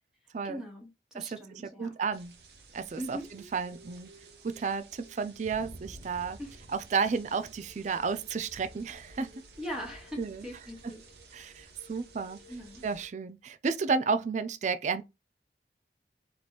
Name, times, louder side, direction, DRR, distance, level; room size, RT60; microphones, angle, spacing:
voice 1, 0.4-0.9 1.1-1.9 3.0-3.2 6.4-6.6 9.6-11.0 12.5-12.8, equal, 5° right, 1.3 m, -40 dB
voice 2, 1.1-2.3 2.7-4.1 4.4-6.4 6.7-9.3 10.2-10.5 11.3-12.4 12.8-15.0, right 5 dB, 40° right, 0.3 m, -32 dB
sound 1, 2.1-13.1, right 2 dB, 60° right, 0.8 m, -52 dB
4.1 x 3.1 x 3.2 m
head